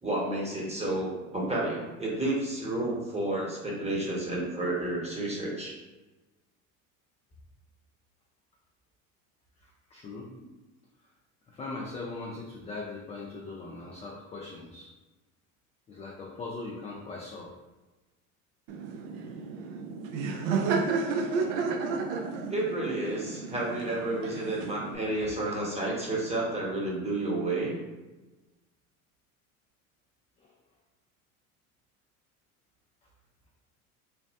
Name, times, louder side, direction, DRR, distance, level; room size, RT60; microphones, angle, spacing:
voice 1, 0.0-5.8 22.5-27.7, right 2 dB, 15° right, -3 dB, 0.9 m, -31 dB
voice 2, 9.6-10.3 11.5-14.9 15.9-17.5 30.4-30.5, left 3 dB, 15° left, -4 dB, 0.4 m, -40 dB
Laughter, 18.7-25.0, right 4 dB, 60° right, 0.5 m, -32 dB
3.3 x 2.0 x 2.7 m, 1.1 s
hypercardioid pair, 80°, 42 cm